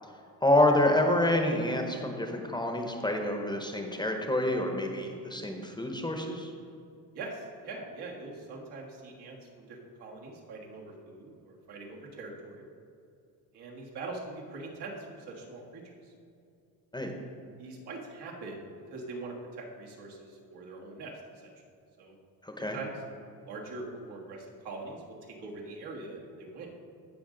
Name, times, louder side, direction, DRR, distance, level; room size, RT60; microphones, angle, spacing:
voice 1, 0.4-6.5 16.9-17.1 22.4-22.8, left 1 dB, 10° left, 3 dB, 0.8 m, -27 dB
voice 2, 7.1-12.6 13.5-16.1 17.6-21.1 21.4-21.5 22.0-22.2 22.6-22.9 23.5-26.7, right 3 dB, 75° right, -1 dB, 1.7 m, -43 dB
15.0 x 5.2 x 3.8 m, 2.5 s
cardioid pair, 125°, 40 cm